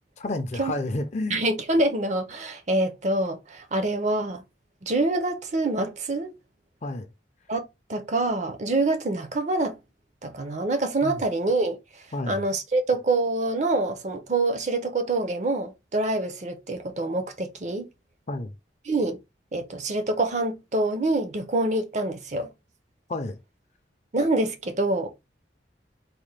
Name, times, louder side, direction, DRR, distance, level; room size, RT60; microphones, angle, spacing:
voice 1, 0.2-1.4 6.8-7.1 11.0-11.2 12.1-12.4 18.3-18.5 23.1-23.4, left 2 dB, 40° left, 0.5 m, -30 dB
voice 2, 1.3-4.4 4.8-6.3 7.5-7.6 7.9-9.8 10.2-11.8 12.3-17.9 18.9-19.2 19.5-22.5 24.1-25.1, right 2 dB, 40° right, 0.5 m, -26 dB
4.1 x 2.1 x 3.2 m
head